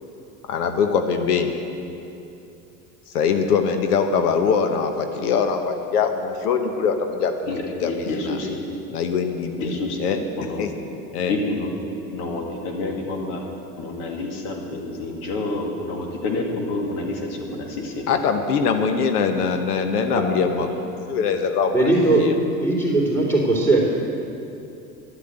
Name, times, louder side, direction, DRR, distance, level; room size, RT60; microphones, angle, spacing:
voice 1, 0.5-1.5 3.1-7.3 7.8-7.9 8.3-8.4 8.9-10.2 10.6-10.7 11.1-11.3 18.1-21.8 22.2-22.4, left 6 dB, 85° left, 6 dB, 1.1 m, -22 dB
voice 2, 7.5-8.6 9.6-10.0 10.4-10.6 11.3-11.7 12.1-13.4 13.8-18.1, left 2 dB, 65° left, 1 dB, 2.5 m, -28 dB
voice 3, 21.7-22.2 22.6-23.8, right 2 dB, 5° left, -4 dB, 3.3 m, -19 dB
11.5 x 8.5 x 8.0 m, 2.7 s
hypercardioid pair, 95°, 45 cm